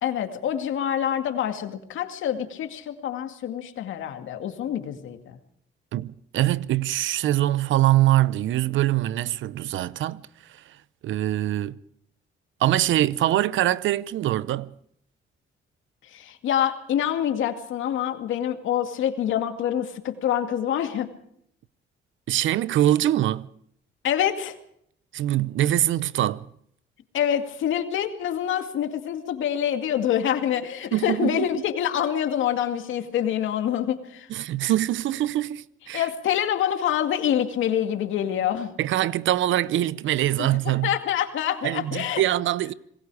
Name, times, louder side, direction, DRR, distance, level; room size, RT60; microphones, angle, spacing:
voice 1, 0.0-5.4 16.1-21.1 24.0-24.6 27.1-34.3 35.9-38.7 40.4-40.5 40.8-42.2, left 10 dB, 80° left, 2.3 m, -26 dB
voice 2, 5.9-10.2 11.0-11.8 12.6-14.7 22.3-23.5 25.1-26.5 30.9-31.5 34.3-36.1 38.8-41.0 41.6-42.7, right 13 dB, 75° right, 0.8 m, -23 dB
27.5 x 19.5 x 4.9 m
cardioid pair, 90°, 20 cm